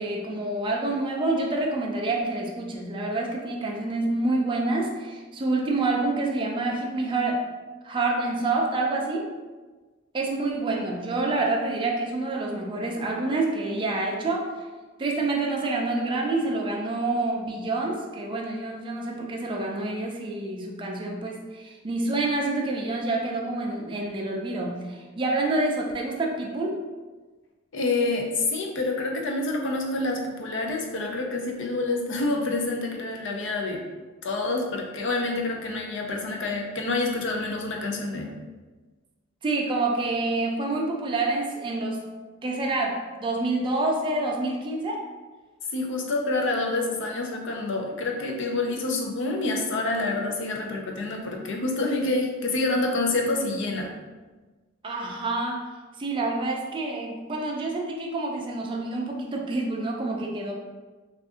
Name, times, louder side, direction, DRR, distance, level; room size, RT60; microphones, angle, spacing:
voice 1, 0.0-7.4 7.8-9.3 10.1-14.5 15.0-26.8 39.4-42.0 42.4-45.0 54.8-55.7 56.0-60.5, right 2 dB, 25° right, -1 dB, 0.4 m, -27 dB
voice 2, 27.7-33.8 34.2-38.3 45.7-54.0, left 2 dB, 65° left, 2 dB, 0.5 m, -27 dB
2.6 x 2.4 x 3.6 m, 1.3 s
head